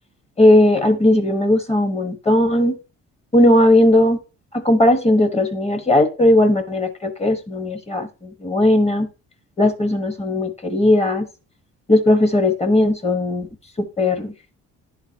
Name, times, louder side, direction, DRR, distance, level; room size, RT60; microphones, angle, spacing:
voice 1, 0.4-2.8 3.3-4.2 4.5-9.1 9.6-11.3 11.9-13.5 13.8-14.3, left 1 dB, 20° left, 8 dB, 1.3 m, -17 dB
11.0 x 3.9 x 2.8 m, 0.32 s
cardioid pair, 75°, 31 cm